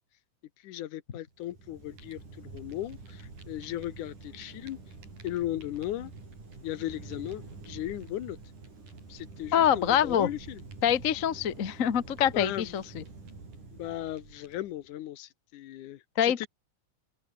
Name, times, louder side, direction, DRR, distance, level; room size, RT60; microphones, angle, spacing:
voice 1, 0.6-4.8 5.2-6.1 6.6-8.4 9.1-10.6 12.3-12.8 13.7-16.5, left 13 dB, 75° left, 2.5 m, -37 dB
Fire, 1.3-14.9, right 3 dB, 70° right, 9.0 m, -47 dB
voice 2, 9.5-10.3 10.8-13.0 16.2-16.5, left 9 dB, 55° left, 0.8 m, -25 dB
open air
omnidirectional pair, 3.7 m